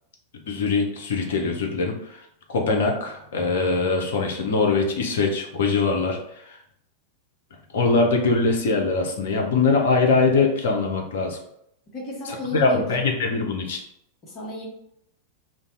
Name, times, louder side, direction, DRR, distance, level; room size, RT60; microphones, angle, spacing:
voice 1, 0.5-2.2 2.5-6.2 6.5-6.6 7.7-11.4 12.5-13.8, left 4 dB, 60° left, 2 dB, 0.6 m, -22 dB
voice 2, 11.9-13.0 14.2-14.7, left 1 dB, 35° left, -3 dB, 1.1 m, -33 dB
2.6 x 2.3 x 3.9 m, 0.75 s
figure-of-eight pair, 90°, 0 cm